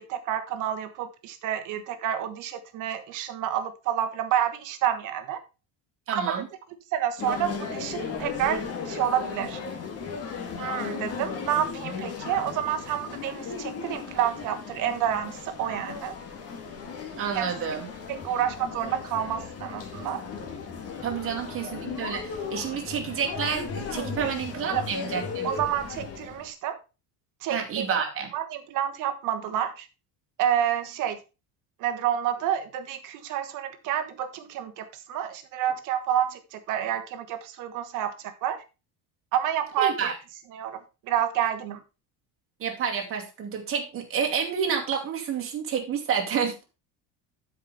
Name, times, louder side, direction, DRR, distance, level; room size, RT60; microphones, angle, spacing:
voice 1, 0.0-5.4 6.1-6.3 6.9-9.6 10.6-16.1 17.3-17.5 18.1-20.2 24.2-24.3 24.7-24.9 25.4-26.8 27.4-27.9 28.3-29.9 30.4-31.2 31.8-38.1 38.4-38.6 39.3-40.1 40.5-41.8, right 10 dB, 50° right, 8 dB, 1.4 m, -29 dB
voice 2, 6.1-6.5 17.2-17.9 21.0-25.5 27.5-28.3 39.8-40.2 42.6-46.6, right 7 dB, 30° right, 2 dB, 2.3 m, -29 dB
sound 1, 7.2-26.5, left 5 dB, 35° left, 1.7 m, -36 dB
12.0 x 5.1 x 4.1 m, 0.29 s
cardioid pair, 175°, 41 cm